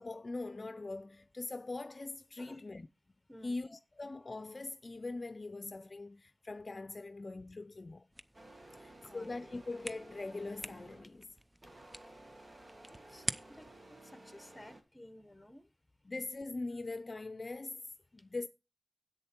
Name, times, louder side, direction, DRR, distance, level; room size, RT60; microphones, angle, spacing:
voice 1, 0.0-2.9 3.4-8.1 8.8-11.3 16.0-18.5, left 3 dB, 55° left, 0.5 m, -42 dB
sound 1, 8.1-13.8, right 1 dB, 20° right, 0.6 m, -46 dB
sound 2, 8.3-11.2 11.6-14.8, right 1 dB, 50° right, 1.9 m, -55 dB
voice 2, 8.7-9.3 13.1-13.7 14.0-15.7, left 1 dB, 15° left, 1.2 m, -55 dB
10.5 x 8.2 x 4.4 m
wide cardioid pair, 85°, 0 cm